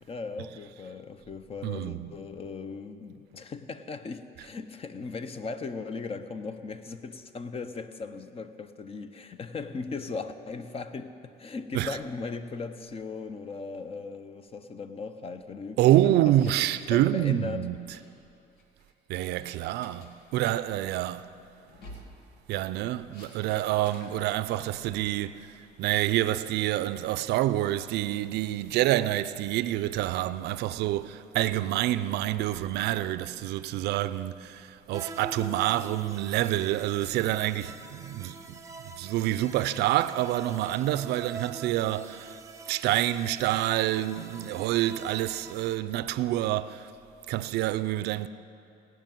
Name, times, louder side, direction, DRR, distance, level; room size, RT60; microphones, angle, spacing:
voice 1, 0.0-16.6 16.9-17.7, left 4 dB, 35° left, 0.8 m, -38 dB
voice 2, 1.6-2.1 4.4-4.5 11.7-12.0 15.8-18.0 19.1-21.2 22.5-25.4 25.8-38.6 39.0-42.4 42.7-46.9 47.3-48.3, right 14 dB, 80° right, 0.5 m, -27 dB
sound 1, 15.9-16.8 17.0-17.2 17.6-18.0 18.6-18.9 19.4-20.1 21.6-22.1 23.1-23.3 23.8-24.2, left 1 dB, 85° left, 2.3 m, -49 dB
sound 2, 34.9-45.8, right 3 dB, 20° right, 0.8 m, -45 dB
17.5 x 6.1 x 9.1 m
cardioid pair, 110°, 17 cm